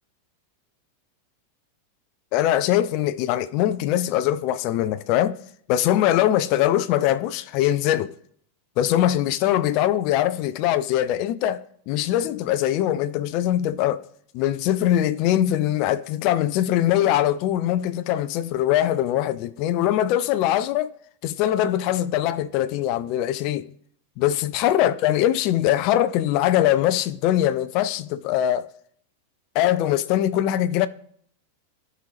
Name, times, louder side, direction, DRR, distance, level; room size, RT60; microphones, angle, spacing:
voice 1, 2.3-5.4 5.7-8.1 8.8-14.0 14.3-20.9 21.2-23.7 24.2-28.7 29.5-30.9, left 12 dB, 45° left, 0.3 m, -22 dB
13.0 x 4.8 x 3.3 m
figure-of-eight pair, 90°, 0 cm